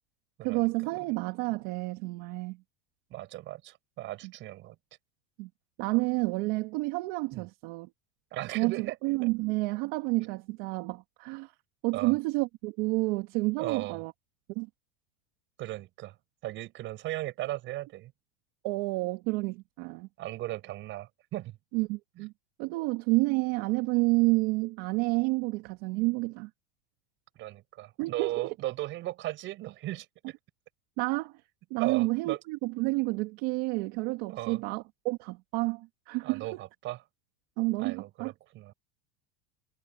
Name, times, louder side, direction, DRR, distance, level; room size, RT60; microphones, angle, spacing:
voice 1, 0.4-2.6 4.2-4.3 5.4-5.5 5.8-7.9 8.5-11.5 11.8-14.1 14.6-14.7 18.6-20.1 21.7-22.3 22.6-26.5 28.0-28.5 31.0-31.4 31.7-36.6 37.6-38.3, right 24 dB, 55° right, 2.1 m, -30 dB
voice 2, 3.1-4.8 7.3-7.4 8.3-9.0 11.9-12.1 13.6-14.0 15.6-16.1 16.4-18.1 20.2-21.5 27.4-30.3 31.8-32.4 34.3-34.6 36.2-37.0 37.8-38.7, right 16 dB, 40° right, 5.1 m, -36 dB
supercardioid pair, 155°, 30 cm